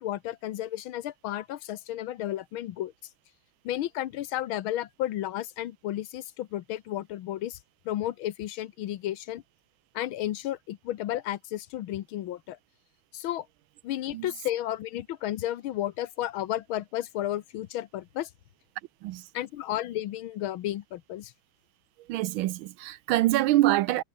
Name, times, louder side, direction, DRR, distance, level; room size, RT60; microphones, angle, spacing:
voice 1, 0.0-2.9 3.7-7.6 7.9-9.4 10.0-12.6 13.1-13.5 13.8-18.3 19.3-21.3, left 13 dB, 85° left, 1.7 m, -33 dB
voice 2, 22.1-24.0, right 16 dB, 80° right, 1.4 m, -25 dB
omnidirectional pair, 2.2 m